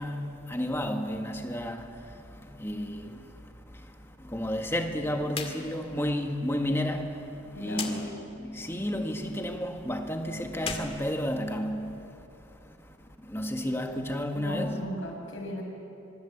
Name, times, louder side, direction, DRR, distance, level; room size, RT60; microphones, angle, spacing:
voice 1, 0.0-12.3 12.6-13.0 13.2-14.8, equal, 15° left, 1.7 m, -32 dB
sound 1, 5.3-5.6 5.9-6.0 7.7-8.0 10.5-11.8, left 5 dB, 30° left, 2.1 m, -36 dB
voice 2, 7.5-8.0 14.3-15.6, equal, 85° left, 6.5 m, -37 dB
25.0 x 23.5 x 8.5 m
head